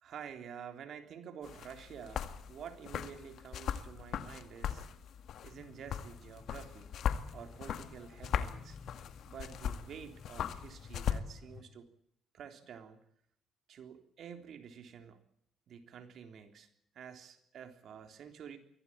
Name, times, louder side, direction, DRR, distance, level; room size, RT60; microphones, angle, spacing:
voice 1, 0.0-4.9 5.4-6.9 7.3-8.8 9.3-11.9 12.3-13.0 13.7-15.2 15.7-16.7 16.9-18.6, right 8 dB, 65° right, 7 dB, 3.6 m, -49 dB
sound 1, 1.4-11.2, left 9 dB, 70° left, 2.0 m, -39 dB
sound 2, 5.5-11.6, left 5 dB, 45° left, 4.5 m, -55 dB
24.0 x 17.0 x 8.9 m, 0.72 s
cardioid pair, 90°, 0 cm